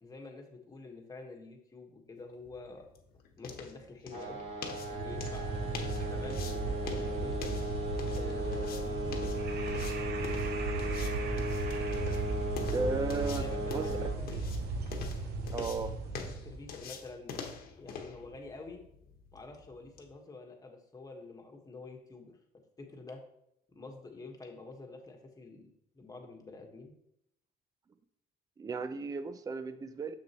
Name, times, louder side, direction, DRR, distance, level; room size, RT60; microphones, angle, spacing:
voice 1, 0.0-2.9 3.4-4.5 4.9-7.5 8.1-9.4 13.4-14.4 16.2-17.4 17.8-18.8 19.3-22.4 22.8-23.2 23.7-26.9, left 3 dB, 20° left, 2 dB, 1.3 m, -48 dB
sound 1, 2.3-20.1, left 6 dB, 65° left, 1.2 m, -46 dB
sound 2, 4.1-14.1, equal, 35° right, 2.8 m, -37 dB
sound 3, 4.8-16.7, right 3 dB, 70° right, 0.9 m, -36 dB
voice 2, 12.7-13.4 13.7-14.0 15.5-15.9 28.6-30.1, right 4 dB, 20° right, 12 dB, 0.4 m, -34 dB
6.8 x 6.4 x 3.0 m, 0.77 s
cardioid pair, 110°, 17 cm